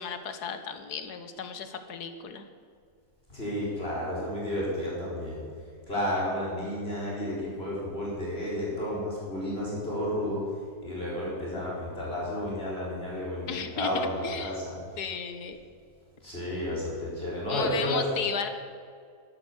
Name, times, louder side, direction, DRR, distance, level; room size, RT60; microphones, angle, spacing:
voice 1, 0.0-2.5 13.5-14.6 15.0-15.6 17.5-18.5, left 6 dB, 85° left, 8 dB, 1.6 m, -34 dB
voice 2, 3.3-5.4 5.9-10.5 10.8-14.8 16.2-18.1, equal, 40° left, -6 dB, 4.7 m, -32 dB
12.5 x 11.5 x 7.1 m, 2.2 s
omnidirectional pair, 1.7 m